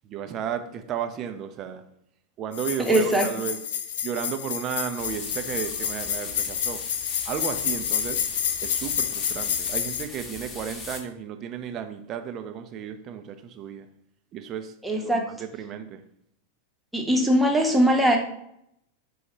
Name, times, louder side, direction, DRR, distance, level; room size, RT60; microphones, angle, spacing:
voice 1, 0.0-1.8 2.4-3.6 4.0-6.8 7.2-13.9 14.3-16.0, right 8 dB, 35° right, 8 dB, 0.4 m, -34 dB
sound 1, 2.5-10.0, left 8 dB, 55° left, 0.4 m, -29 dB
voice 2, 2.8-3.3 14.8-15.3 16.9-18.2, right 1 dB, 5° right, 0 dB, 0.8 m, -21 dB
sound 2, 5.0-11.0, left 3 dB, 25° left, 0.7 m, -40 dB
4.7 x 2.3 x 4.4 m, 0.74 s
figure-of-eight pair, 90°, 0 cm